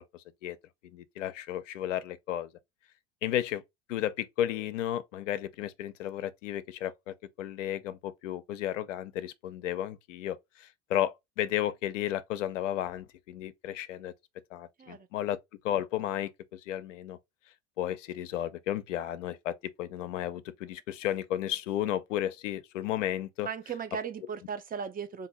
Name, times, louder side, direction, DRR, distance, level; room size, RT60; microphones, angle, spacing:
voice 1, 0.1-0.6 0.8-2.5 3.2-3.6 3.9-14.1 14.5-15.4 15.6-17.2 17.8-23.5, left 12 dB, 85° left, 0.5 m, -33 dB
voice 2, 23.4-25.3, right 7 dB, 25° right, 0.6 m, -37 dB
2.6 x 2.6 x 4.0 m
hypercardioid pair, 80°, 36 cm